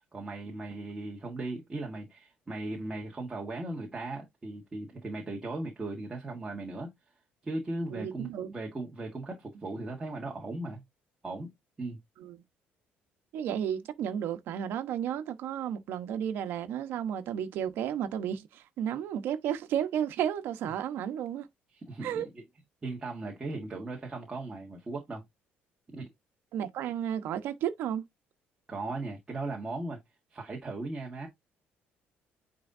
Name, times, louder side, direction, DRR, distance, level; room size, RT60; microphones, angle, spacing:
voice 1, 0.0-6.9 7.4-10.8 11.2-11.5 11.8-12.0 21.7-22.4 22.8-25.2 25.9-26.1 28.7-30.0 30.3-31.3, right 2 dB, 15° right, 1.6 m, -37 dB
voice 2, 7.9-8.5 12.2-12.4 13.3-21.5 22.0-22.3 26.5-28.0, right 9 dB, 65° right, 1.2 m, -33 dB
9.6 x 3.9 x 2.7 m
cardioid pair, 165°, 4 cm